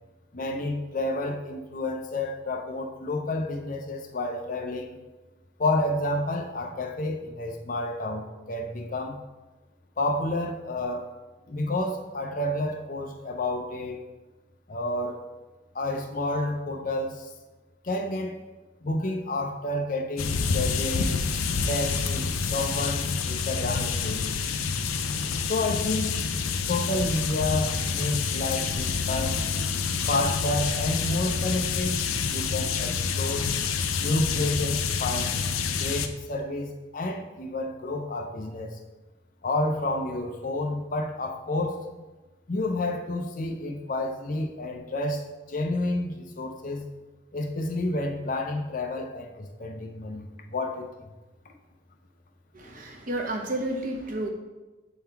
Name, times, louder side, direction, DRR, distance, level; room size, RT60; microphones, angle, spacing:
voice 1, 0.3-5.0 5.6-9.2 10.0-11.1 11.5-14.0 14.7-15.2 15.7-17.3 17.8-18.4 18.8-21.4 21.7-24.4 25.4-26.1 26.6-29.5 30.1-32.0 32.2-33.5 34.0-35.4 35.7-38.8 39.4-41.8 42.5-46.9 47.3-51.1, left 2 dB, 40° left, 2 dB, 0.6 m, -30 dB
sound 1, 20.2-36.1, left 5 dB, 90° left, 0.5 m, -28 dB
voice 2, 52.5-54.3, right 1 dB, 40° right, 1 dB, 0.9 m, -31 dB
7.1 x 3.7 x 4.4 m, 1.2 s
head